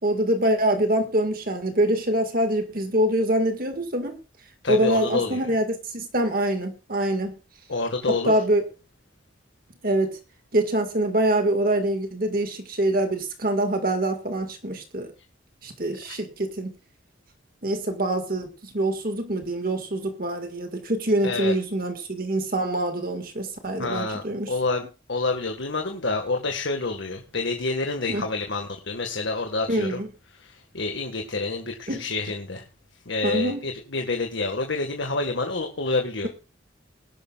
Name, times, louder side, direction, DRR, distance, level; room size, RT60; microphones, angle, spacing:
voice 1, 0.0-4.2 4.7-7.3 8.1-8.6 9.8-10.1 10.5-15.1 15.6-16.7 17.6-24.6 28.1-28.2 29.7-30.1 31.9-32.0 33.2-33.6, right 1 dB, 45° right, 6 dB, 1.9 m, -25 dB
voice 2, 4.6-5.4 7.7-8.3 16.1-16.2 21.2-21.5 23.8-24.8 25.1-30.0 30.7-32.6 33.0-36.3, left 3 dB, 70° left, 4 dB, 1.8 m, -28 dB
21.0 x 11.5 x 2.4 m, 0.31 s
head